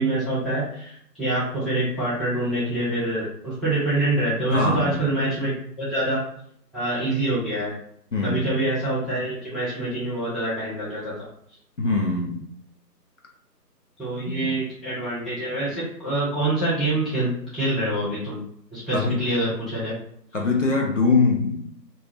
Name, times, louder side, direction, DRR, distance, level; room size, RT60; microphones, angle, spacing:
voice 1, 0.0-6.2 6.7-7.7 8.2-11.1 14.0-18.4 18.7-19.9, right 1 dB, ahead, -12 dB, 0.5 m, -26 dB
voice 2, 4.5-5.2 8.1-8.6 11.8-12.4 14.3-14.5 18.9-19.3 20.3-21.9, left 3 dB, 50° left, 0 dB, 0.5 m, -23 dB
2.7 x 2.2 x 3.3 m, 0.67 s
figure-of-eight pair, 155°, 50 cm